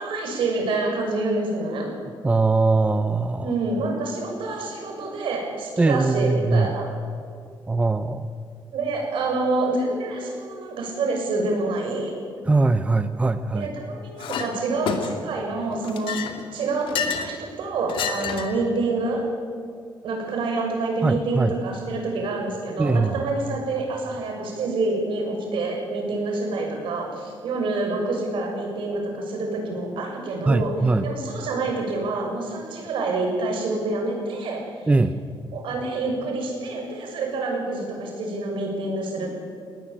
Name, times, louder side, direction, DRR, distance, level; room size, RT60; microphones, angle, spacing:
voice 1, 0.0-1.9 3.4-6.9 8.7-12.1 13.5-16.2 16.5-19.2 20.0-30.7 31.0-34.9 35.5-39.3, right 3 dB, 80° right, 1 dB, 6.8 m, -27 dB
voice 2, 2.2-3.5 5.8-6.7 7.7-8.3 12.5-13.7 21.0-21.5 22.8-23.2 30.5-31.1 34.9-35.2, right 3 dB, 15° right, 11 dB, 0.7 m, -21 dB
Chink clink, 14.2-14.5 14.9-15.4 15.8-17.3 17.9-18.6, left 6 dB, 85° left, 2.4 m, -29 dB
21.5 x 18.5 x 8.6 m, 2.2 s
cardioid pair, 150°, 8 cm